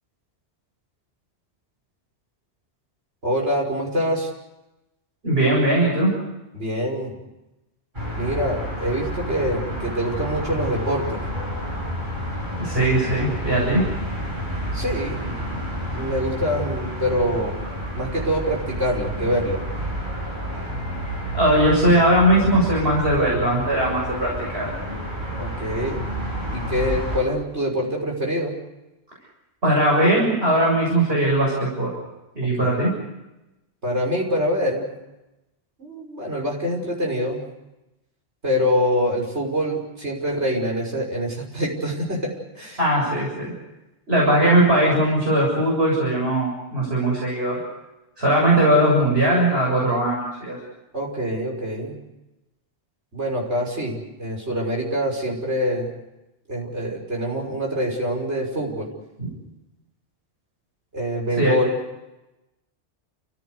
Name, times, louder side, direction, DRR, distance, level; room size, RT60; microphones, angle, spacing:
voice 1, 3.2-4.3 6.5-7.2 8.2-11.2 14.7-15.4 15.9-17.6 17.9-19.6 25.4-26.1 26.5-28.5 32.4-32.8 33.8-34.9 35.8-37.4 38.4-42.3 42.5-42.8 50.9-52.0 53.1-55.9 56.5-58.9 60.9-61.8, equal, 85° right, -1 dB, 6.3 m, -25 dB
voice 2, 5.2-6.1 12.6-13.8 21.3-24.7 29.6-31.9 32.4-32.9 42.8-43.5 44.1-47.6 48.2-50.6 59.2-59.3 61.4-61.5, right 1 dB, 65° right, -3 dB, 7.6 m, -19 dB
sound 1, 7.9-27.2, equal, 45° right, 7.3 m, -30 dB
29.5 x 16.0 x 8.2 m, 0.98 s
omnidirectional pair, 1.1 m